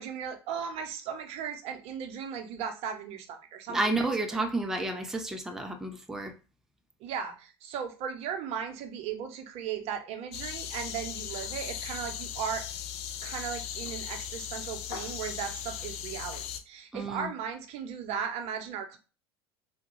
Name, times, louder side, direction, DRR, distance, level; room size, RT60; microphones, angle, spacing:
voice 1, 0.0-4.4 7.0-12.7 13.2-19.0, right 7 dB, 50° right, 0.7 m, -37 dB
voice 2, 3.7-6.3 16.9-17.3, right 2 dB, 5° right, 0.5 m, -31 dB
sound 1, 10.3-16.6, left 9 dB, 50° left, 0.5 m, -38 dB
3.4 x 2.2 x 3.0 m
hypercardioid pair, 75°, 13 cm